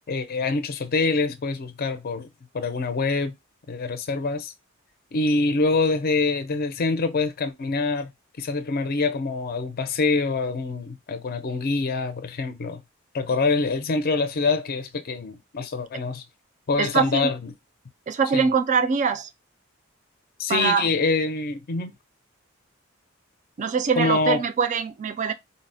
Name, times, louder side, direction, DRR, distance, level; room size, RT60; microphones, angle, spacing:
voice 1, 0.1-2.3 2.5-3.3 3.7-4.5 5.1-8.1 8.4-12.8 13.1-16.2 16.7-17.4 18.3-18.5 20.4-21.9 24.0-24.4, left 3 dB, 45° left, 0.5 m, -25 dB
voice 2, 16.8-17.3 18.1-19.3 20.5-20.9 23.6-25.3, right 6 dB, 35° right, 0.3 m, -23 dB
3.9 x 2.0 x 2.6 m
head